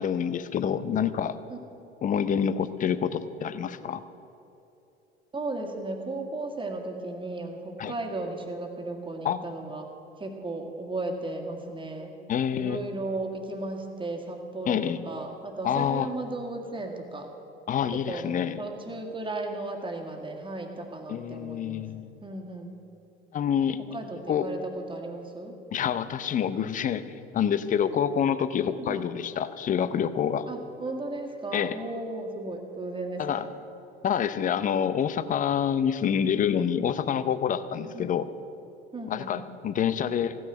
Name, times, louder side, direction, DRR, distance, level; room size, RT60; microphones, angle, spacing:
voice 1, 0.0-1.4 2.0-4.0 7.8-7.9 9.2-9.5 12.3-12.8 14.7-15.0 15.6-16.1 17.7-18.6 21.1-22.1 23.3-23.8 24.3-24.5 25.7-30.5 31.5-31.8 33.2-33.5 34.0-38.3 39.1-40.4, left 8 dB, 25° left, 14 dB, 0.7 m, -27 dB
voice 2, 5.3-9.9 10.2-12.1 12.6-14.8 15.0-17.3 18.1-21.9 22.2-22.7 23.9-25.6 28.8-29.1 30.5-33.5 37.9-38.1 38.9-39.5, right 2 dB, 15° right, 2 dB, 1.9 m, -35 dB
16.0 x 6.3 x 9.0 m, 2.9 s
figure-of-eight pair, 65°, 31 cm